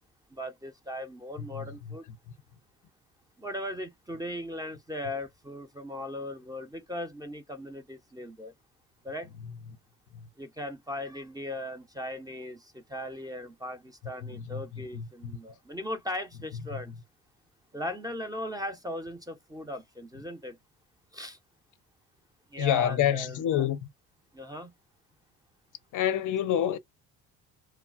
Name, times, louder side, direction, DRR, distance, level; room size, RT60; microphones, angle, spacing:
voice 1, 0.3-2.1 3.4-8.5 9.0-9.3 10.4-16.9 17.7-20.6 21.1-21.4 22.5-23.7 24.3-24.7, left 1 dB, 10° right, 0.5 m, -38 dB
voice 2, 1.5-2.0 10.1-10.2 14.2-15.4 16.7-16.8 22.6-23.9 25.9-26.8, left 10 dB, 55° left, 0.5 m, -28 dB
3.1 x 2.2 x 2.3 m
supercardioid pair, 80°, 38 cm